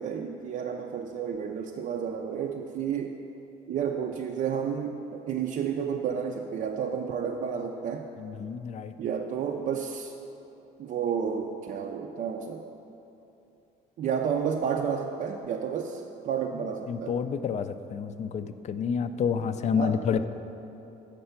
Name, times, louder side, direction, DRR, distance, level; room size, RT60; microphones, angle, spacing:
voice 1, 0.0-3.1 3.7-8.1 9.0-10.1 10.8-12.6 14.0-17.2 19.8-20.0, right 7 dB, 50° right, 2 dB, 0.4 m, -31 dB
voice 2, 8.2-8.9 16.9-20.3, left 6 dB, 40° left, 11 dB, 0.4 m, -29 dB
6.7 x 6.6 x 5.7 m, 2.9 s
cardioid pair, 110°, 17 cm